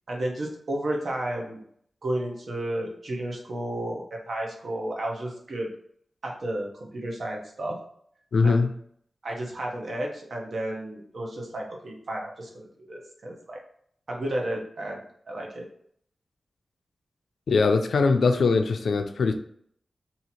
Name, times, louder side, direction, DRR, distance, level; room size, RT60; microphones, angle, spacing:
voice 1, 0.1-1.6 2.0-5.7 6.2-7.8 8.4-8.6 9.2-13.6 14.1-15.7, right 1 dB, 55° right, 0 dB, 0.9 m, -32 dB
voice 2, 8.3-8.7 17.5-19.3, left 4 dB, 80° left, 6 dB, 0.4 m, -21 dB
2.8 x 2.8 x 4.2 m, 0.65 s
wide cardioid pair, 155°, 0 cm